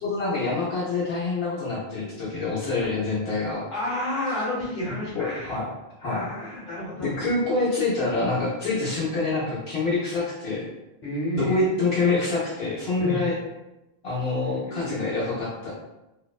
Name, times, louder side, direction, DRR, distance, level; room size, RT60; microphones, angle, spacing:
voice 1, 0.0-3.6 5.1-5.7 6.0-6.3 7.0-10.6 11.3-13.3 14.0-15.7, left 3 dB, 75° left, -8 dB, 0.9 m, -26 dB
voice 2, 3.7-5.6 6.0-7.1 11.0-11.7 13.0-13.2 14.4-14.9, left 1 dB, 45° left, -8 dB, 1.1 m, -30 dB
2.7 x 2.0 x 2.3 m, 0.95 s
omnidirectional pair, 1.0 m